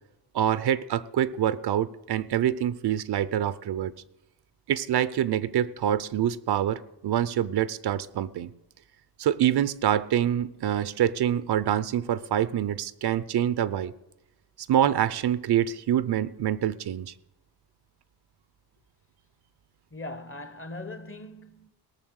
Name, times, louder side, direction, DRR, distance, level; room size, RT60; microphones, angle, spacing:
voice 1, 0.3-3.9 4.7-8.5 9.2-13.9 14.7-17.1, right 10 dB, 80° right, 0.7 m, -26 dB
voice 2, 19.9-21.7, left 2 dB, 35° left, 1.0 m, -40 dB
18.0 x 6.7 x 6.4 m
cardioid pair, 95°, 39 cm